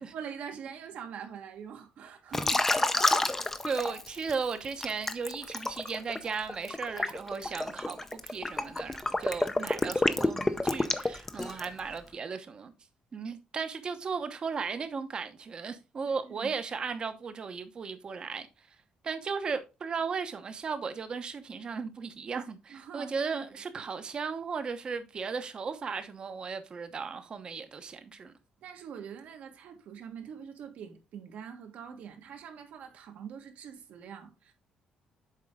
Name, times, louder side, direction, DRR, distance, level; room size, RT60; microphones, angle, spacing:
voice 1, 0.1-3.5 16.0-16.5 22.7-23.1 23.8-23.9 28.6-34.5, right 7 dB, 70° right, 1.5 m, -44 dB
Liquid, 2.3-4.3 4.8-11.8, left 2 dB, 15° left, 0.6 m, -29 dB
voice 2, 3.6-12.7 13.1-18.5 19.0-28.3, right 5 dB, 35° right, 0.9 m, -36 dB
7.5 x 4.3 x 3.7 m
cardioid pair, 135°, 3 cm